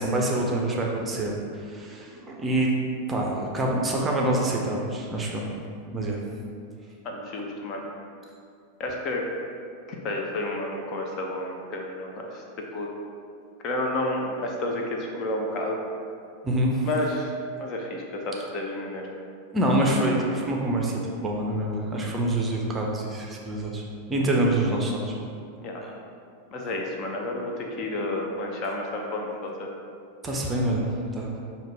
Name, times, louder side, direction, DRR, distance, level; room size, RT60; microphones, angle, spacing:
voice 1, 0.0-2.7 3.1-5.5 5.9-6.2 16.4-16.9 19.5-23.8 24.1-25.1 25.8-25.9 30.2-31.4, right 1 dB, 15° right, -1 dB, 0.6 m, -26 dB
voice 2, 7.0-7.9 8.8-9.3 9.9-12.4 12.7-12.9 13.6-15.8 16.8-17.3 17.6-19.0 21.9-22.1 25.6-25.8 26.5-29.3 29.6-29.7, left 1 dB, 35° left, 0 dB, 0.6 m, -30 dB
5.6 x 2.8 x 3.3 m, 2.4 s
figure-of-eight pair, 90°, 0 cm